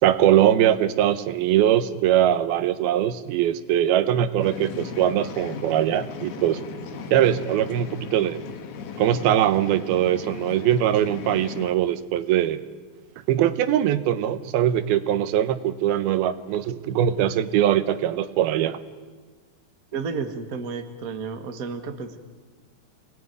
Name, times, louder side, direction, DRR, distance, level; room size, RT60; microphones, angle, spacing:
voice 1, 0.0-6.6 7.1-8.4 9.0-12.6 13.3-18.8, right 11 dB, 85° right, 12 dB, 2.9 m, -21 dB
sound 1, 4.4-11.7, left 5 dB, 85° left, 3.7 m, -37 dB
voice 2, 19.9-22.2, right 5 dB, 55° right, 7 dB, 1.0 m, -32 dB
28.5 x 20.5 x 9.4 m, 1.4 s
omnidirectional pair, 4.3 m